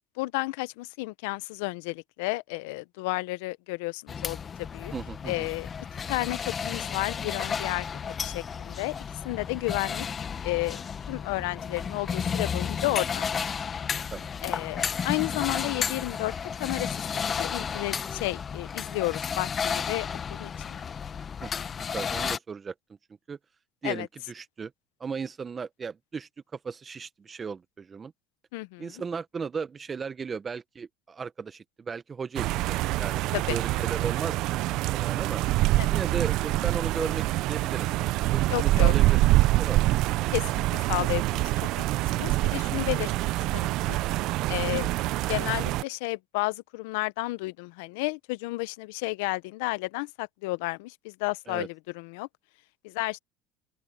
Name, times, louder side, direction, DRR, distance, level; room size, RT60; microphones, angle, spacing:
voice 1, 0.2-4.9 5.3-5.7 6.1-7.9 8.2-8.9 9.2-10.1 10.4-10.8 11.1-13.3 14.4-16.3 16.6-20.8 23.8-24.1 28.5-28.9 33.3-33.6 35.8-36.0 38.4-38.9 40.3-41.8 42.1-44.0 44.5-44.9 45.3-52.3 52.8-53.2, left 22 dB, 80° left, 0.8 m, -32 dB
sound 1, 4.1-22.4, left 6 dB, 35° left, 0.9 m, -33 dB
voice 2, 4.9-5.5 14.1-14.3 21.4-21.5 21.9-22.7 23.3-23.4 23.8-24.7 25.0-28.1 28.8-34.4 34.7-35.4 35.9-37.9 38.3-39.2 39.6-39.9 51.5-51.7, right 5 dB, 30° right, 0.9 m, -36 dB
sound 2, 32.3-45.8, right 18 dB, 65° right, 0.6 m, -25 dB
open air
supercardioid pair, 95°, 0 cm